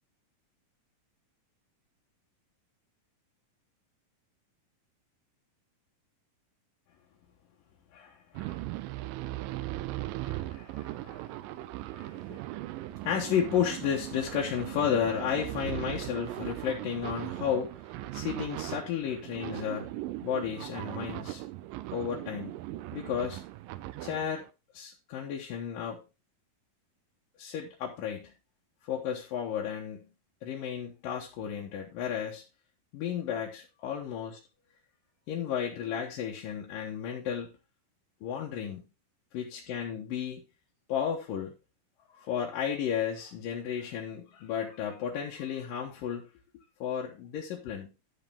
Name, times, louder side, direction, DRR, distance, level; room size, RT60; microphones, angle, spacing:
voice 1, 7.9-8.6 10.2-11.4 11.7-12.4 12.9-17.8 18.1-21.4 21.9-22.6 22.9-23.4 24.0-24.5 24.7-26.0 27.4-28.3 28.9-30.1 30.4-32.4 32.9-34.4 35.3-37.5 38.2-38.9 39.3-40.4 40.9-41.6 42.2-46.3 46.8-47.9, left 8 dB, 75° left, -2 dB, 2.9 m, -33 dB
sound 1, 8.3-24.4, right 16 dB, 80° right, 2.2 m, -38 dB
11.0 x 6.6 x 3.6 m, 0.29 s
omnidirectional pair, 4.0 m